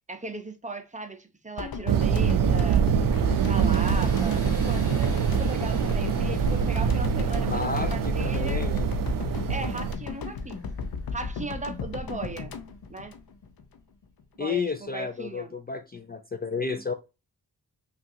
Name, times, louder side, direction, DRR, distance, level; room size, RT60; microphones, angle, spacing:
voice 1, 0.1-2.9 3.4-8.6 9.5-10.6 11.1-12.5 12.9-13.1 14.4-15.5, right 2 dB, 20° right, 0.6 m, -37 dB
sound 1, 1.6-13.8 14.0-14.2, left 5 dB, 70° left, 0.7 m, -35 dB
sound 2, 1.9-9.9, right 7 dB, 60° right, 0.5 m, -24 dB
Tools, 3.1-11.8, equal, 10° left, 2.2 m, -49 dB
voice 2, 7.4-8.9 14.4-16.9, left 5 dB, 25° left, 0.4 m, -32 dB
5.6 x 2.5 x 2.6 m
wide cardioid pair, 115°, 37 cm